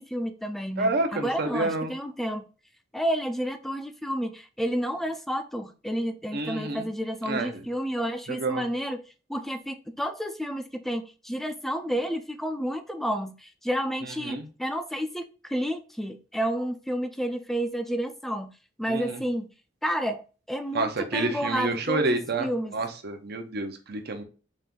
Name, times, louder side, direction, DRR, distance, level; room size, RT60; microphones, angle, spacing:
voice 1, 0.0-2.4 2.9-9.0 9.3-18.5 18.8-19.5 19.8-20.2 20.5-22.8, equal, ahead, 0.4 m, -30 dB
voice 2, 0.8-1.9 6.3-6.9 7.2-7.5 8.3-8.6 14.2-14.5 18.9-19.2 20.7-24.2, right 2 dB, 60° right, 0.8 m, -29 dB
4.2 x 2.6 x 3.6 m
head